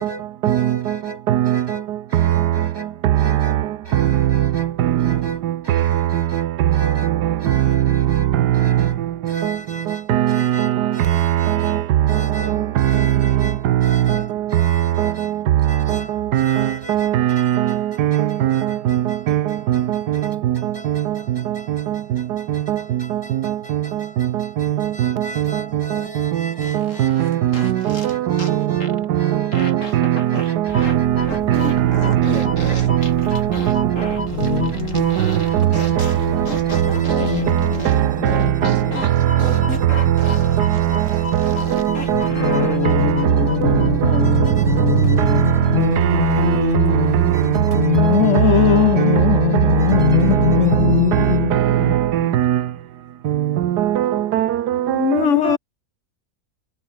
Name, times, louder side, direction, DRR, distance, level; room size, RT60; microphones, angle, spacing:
voice 1, 0.0-33.6 33.9-51.4, equal, 15° right, 3.0 m, -40 dB
voice 2, 1.3-1.6 4.8-4.9 10.1-10.6 15.0-15.1 16.3-17.7 18.0-18.6 18.9-19.0 19.3-19.4 19.7-19.8 20.5-20.6 22.7-22.8 27.0-27.7 29.6-30.2 30.7-31.1 31.5-31.9 32.2-32.4 32.9-33.2 33.7-33.8 34.9-35.2 35.8-36.0 37.1-37.2 38.3-38.8 41.4-41.8 42.1-42.6 42.9-43.0 48.0-48.2 49.0-49.2 50.5-50.6 51.1-51.2 51.5-52.6 53.8-54.5, right 12 dB, 85° right, 1.4 m, -19 dB
sound 1, 26.6-28.6 28.8-29.1 29.5-31.0 31.2-42.8, left 2 dB, 50° left, 4.9 m, -33 dB
sound 2, 30.7-48.2, left 3 dB, 25° left, 1.2 m, -34 dB
voice 3, 34.3-35.1 35.8-35.9 37.2-39.0 42.4-51.9 54.9-55.6, left 12 dB, 65° left, 0.7 m, -21 dB
omnidirectional pair, 1.7 m